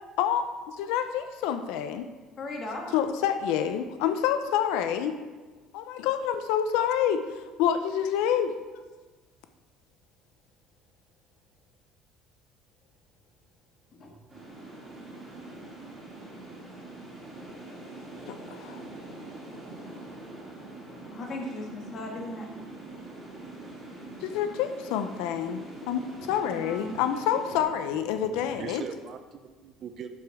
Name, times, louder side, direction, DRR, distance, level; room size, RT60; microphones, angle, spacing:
voice 1, 0.8-2.1 2.9-5.1 5.7-8.5 18.3-18.8 24.2-25.6 25.9-28.8, left 9 dB, 80° left, 8 dB, 0.6 m, -27 dB
voice 2, 2.4-2.9 13.9-14.1 21.1-22.5 26.5-27.0, left 1 dB, 30° left, 0 dB, 1.7 m, -37 dB
sound 1, 14.3-27.6, right 2 dB, 15° right, 3.2 m, -44 dB
voice 3, 28.2-30.1, right 6 dB, 35° right, 9 dB, 0.5 m, -41 dB
12.0 x 7.6 x 3.6 m, 1.3 s
cardioid pair, 180°, 0 cm